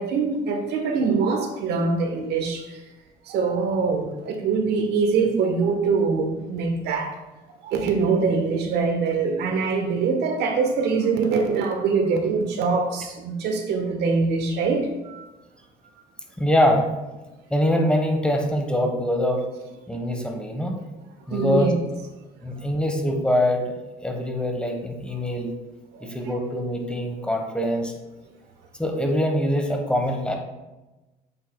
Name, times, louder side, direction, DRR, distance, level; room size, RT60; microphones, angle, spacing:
voice 1, 0.0-2.8 3.3-7.1 7.6-15.2 21.3-21.8 25.9-26.1, right 4 dB, 80° right, 5 dB, 1.2 m, -23 dB
voice 2, 16.4-16.8 17.5-19.4 19.9-20.8 21.3-21.7 22.4-23.7 24.0-25.5 26.0-27.9 28.8-30.4, equal, 5° left, 2 dB, 1.2 m, -23 dB
8.1 x 7.7 x 2.3 m, 1.1 s
cardioid pair, 110°, 17 cm